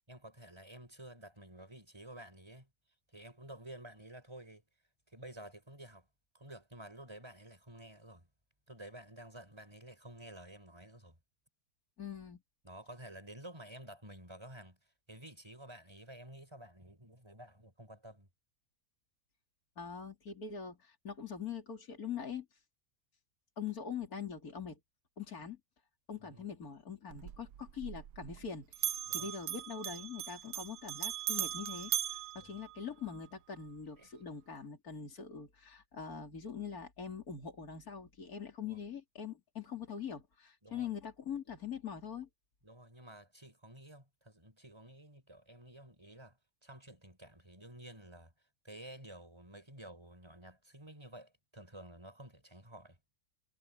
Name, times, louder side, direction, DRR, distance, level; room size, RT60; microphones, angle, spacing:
voice 1, 0.1-2.7 3.1-4.6 5.1-6.1 6.3-8.3 8.7-11.2 12.6-14.8 15.1-18.3 26.2-26.4 29.1-29.3 32.4-32.6 34.0-34.2 38.6-38.8 40.6-40.9 42.6-48.3 48.6-53.0, right 1 dB, 15° right, 6.4 m, -52 dB
voice 2, 12.0-12.4 19.8-22.5 23.6-24.8 25.2-25.6 26.1-42.3, left 7 dB, 65° left, 3.6 m, -43 dB
Bell, 27.1-28.5 28.7-33.2, right 12 dB, 85° right, 1.3 m, -39 dB
omnidirectional pair, 1.7 m